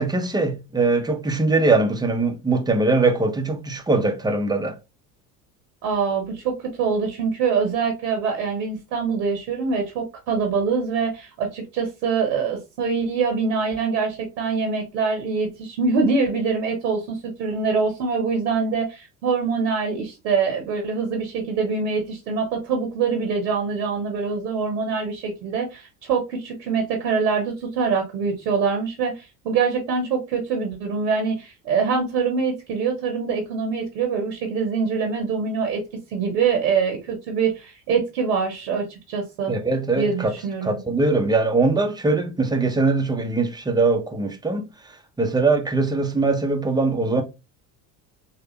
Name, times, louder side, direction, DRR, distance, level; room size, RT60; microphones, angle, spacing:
voice 1, 0.0-4.7 39.5-40.3 40.6-44.7 45.2-47.2, right 3 dB, 10° right, 0.5 m, -21 dB
voice 2, 5.8-35.8 36.1-39.6 39.9-40.8, right 5 dB, 85° right, 0.8 m, -24 dB
3.2 x 2.3 x 2.8 m
hypercardioid pair, 70°, 49 cm